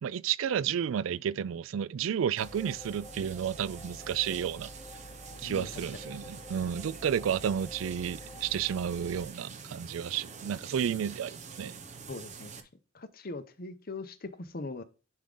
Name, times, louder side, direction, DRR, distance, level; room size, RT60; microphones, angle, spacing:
voice 1, 0.0-4.7 5.4-11.8, right 8 dB, 80° right, 0.3 m, -31 dB
sound 1, 2.4-9.3, left 1 dB, 5° left, 1.0 m, -49 dB
sound 2, 2.4-12.6, right 5 dB, 35° right, 0.8 m, -47 dB
voice 2, 5.4-6.1 12.1-12.5 12.9-14.8, left 3 dB, 50° left, 0.8 m, -41 dB
10.5 x 3.7 x 3.8 m
head